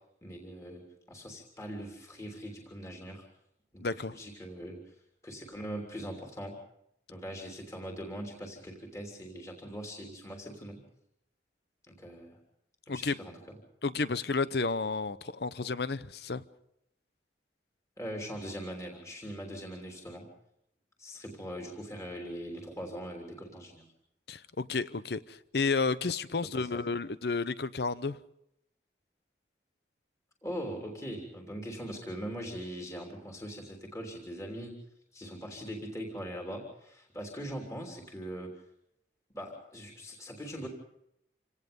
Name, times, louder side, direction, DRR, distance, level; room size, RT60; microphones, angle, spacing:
voice 1, 0.2-3.2 3.7-4.9 5.2-6.6 7.1-10.8 11.9-12.4 12.9-13.6 18.0-20.3 21.0-23.8 26.5-27.0 30.4-34.8 35.1-38.5 39.3-40.7, equal, 15° left, 0 dB, 3.2 m, -41 dB
voice 2, 3.8-4.1 12.9-13.2 13.8-16.4 24.3-28.2, left 4 dB, 65° left, 15 dB, 0.8 m, -31 dB
27.5 x 18.0 x 5.3 m, 0.78 s
head